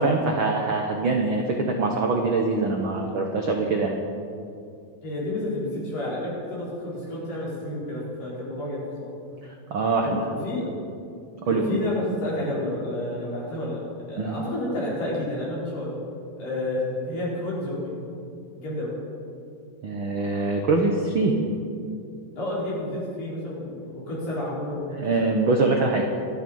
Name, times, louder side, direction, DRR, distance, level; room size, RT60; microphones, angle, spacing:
voice 1, 0.0-4.0 9.7-10.1 11.5-11.8 14.2-14.4 19.8-21.4 24.9-26.1, right 3 dB, 75° right, 2 dB, 1.1 m, -23 dB
voice 2, 5.0-9.1 10.0-10.2 10.4-10.6 11.4-13.8 14.1-15.9 16.4-17.9 18.6-18.9 22.4-24.8 25.2-25.3, left 1 dB, 75° left, -7 dB, 6.7 m, -30 dB
24.5 x 9.2 x 5.5 m, 2.5 s
omnidirectional pair, 3.9 m